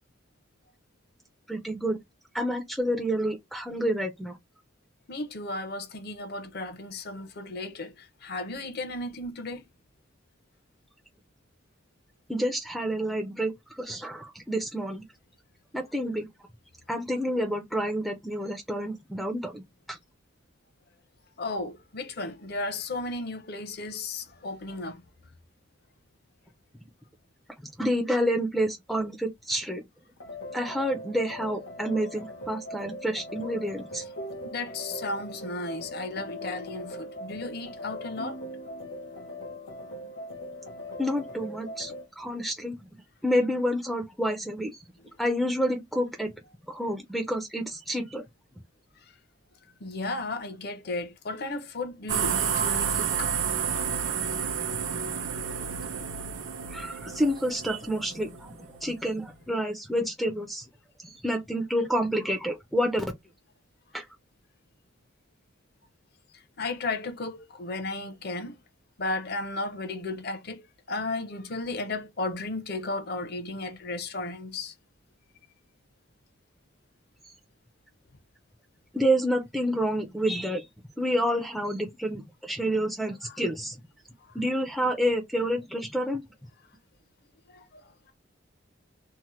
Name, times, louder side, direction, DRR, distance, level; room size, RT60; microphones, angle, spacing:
voice 1, 1.5-2.0 2.3-4.4 12.3-15.0 15.7-16.3 16.9-19.6 19.9-20.0 27.6-29.8 30.5-34.0 41.0-42.8 43.2-44.7 45.2-46.3 46.7-48.2 56.7-60.7 61.0-63.1 63.9-64.0 78.9-80.7 81.0-83.8 84.3-86.2, equal, ahead, 0.4 m, -29 dB
voice 2, 5.1-9.6 21.4-25.0 34.5-38.4 49.8-53.3 53.7-53.8 66.6-68.6 69.0-70.6 70.9-74.7 87.5-87.6, left 2 dB, 55° left, 0.6 m, -34 dB
sound 1, 30.2-42.1, left 1 dB, 80° left, 0.9 m, -40 dB
sound 2, 52.1-58.9, right 7 dB, 85° right, 0.6 m, -30 dB
2.8 x 2.1 x 3.0 m
head